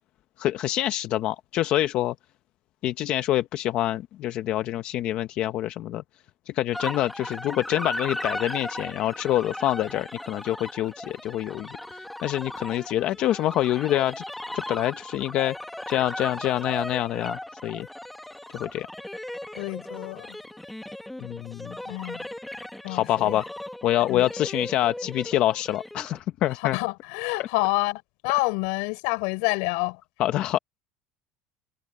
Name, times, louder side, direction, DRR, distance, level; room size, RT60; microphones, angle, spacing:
voice 1, 0.4-2.1 2.8-6.0 6.5-14.2 14.5-15.6 15.9-17.9 18.5-18.9 21.2-21.8 22.9-23.4 23.8-26.8 30.2-30.6, left 13 dB, 40° left, 0.7 m, -26 dB
sound 1, 6.7-26.2, left 1 dB, 5° left, 1.4 m, -37 dB
voice 2, 19.5-20.4 21.9-22.2 22.8-23.4 24.1-24.2 26.6-30.0, left 25 dB, 70° left, 3.7 m, -28 dB
cardioid pair, 165°, 3 cm